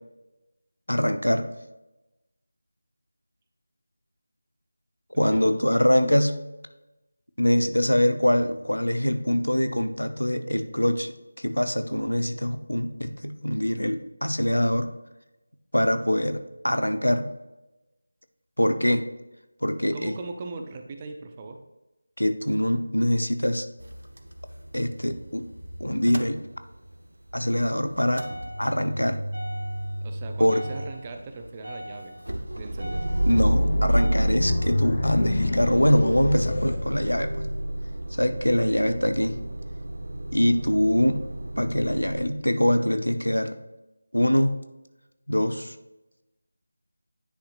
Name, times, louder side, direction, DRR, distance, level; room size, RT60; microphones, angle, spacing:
voice 1, 0.9-1.5 5.2-6.4 7.4-14.9 15.7-17.3 18.6-19.1 19.6-20.1 22.2-23.7 24.7-25.5 25.8-26.4 27.3-28.3 28.6-29.2 30.4-30.7 33.3-37.4 38.1-39.3 40.3-41.3 41.6-43.6 44.1-44.6 45.3-45.7, equal, 85° left, 9 dB, 0.7 m, -24 dB
voice 2, 5.1-5.5 19.9-21.6 30.0-32.2 32.6-33.0 38.7-39.0, right 3 dB, 20° right, 5 dB, 0.6 m, -39 dB
Motor vehicle (road) / Engine starting / Idling, 23.8-27.0 27.3-42.3, right 1 dB, 75° right, 0.8 m, -31 dB
sound 1, 33.3-37.6, left 2 dB, 45° left, 0.9 m, -27 dB
9.9 x 5.7 x 2.4 m, 1.0 s
figure-of-eight pair, 165°, 0 cm